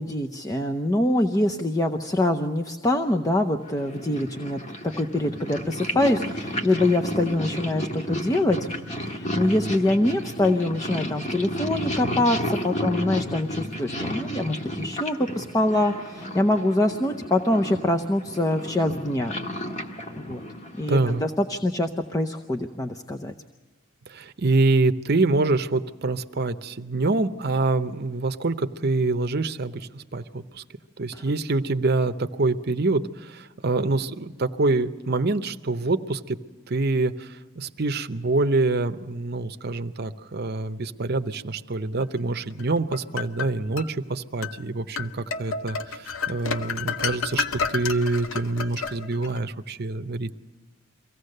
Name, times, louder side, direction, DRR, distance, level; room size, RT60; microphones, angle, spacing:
voice 1, 0.0-4.6 5.0-8.6 9.0-19.4 20.2-20.4 20.8-23.3 31.1-31.2, left 1 dB, 15° left, 4 dB, 0.7 m, -24 dB
Purr, 3.7-21.3, equal, 35° left, 1.7 m, -32 dB
voice 2, 20.9-21.2 24.1-30.6 31.0-36.4 36.7-50.4, right 3 dB, 50° right, 9 dB, 0.8 m, -25 dB
sound 1, 42.6-43.9 44.4-44.6 45.0-49.4, left 5 dB, 80° left, 0.9 m, -30 dB
24.0 x 16.5 x 6.6 m, 1.4 s
head